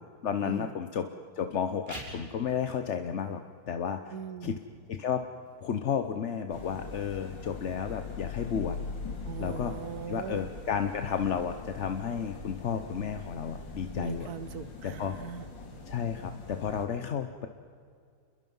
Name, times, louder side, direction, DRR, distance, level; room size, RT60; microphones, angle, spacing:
voice 1, 0.2-1.1 1.4-3.4 3.7-4.1 4.4-4.5 4.9-5.2 5.6-8.8 9.4-9.7 10.1-14.3 14.8-15.2 15.9-17.5, left 7 dB, 50° left, 7 dB, 0.9 m, -32 dB
sound 1, 1.7-12.7, right 1 dB, 30° right, 5.4 m, -54 dB
voice 2, 4.1-4.6 9.2-10.5 14.0-15.5, right 8 dB, 60° right, 12 dB, 1.4 m, -40 dB
sound 2, 6.5-16.9, left 4 dB, 75° left, 3.0 m, -42 dB
28.5 x 21.5 x 5.5 m, 2.2 s
omnidirectional pair, 2.0 m